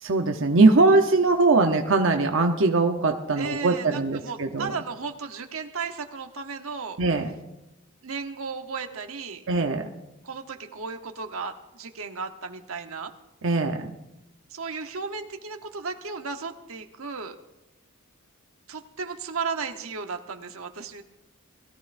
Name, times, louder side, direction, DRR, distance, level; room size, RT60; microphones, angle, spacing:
voice 1, 0.0-4.7 7.0-7.3 9.5-9.9 13.4-13.9, right 3 dB, 65° right, 4 dB, 0.9 m, -21 dB
voice 2, 3.4-7.0 8.0-9.4 10.2-13.1 14.5-17.4 18.7-21.0, right 5 dB, 85° right, 6 dB, 1.1 m, -34 dB
21.0 x 14.5 x 2.6 m, 0.95 s
head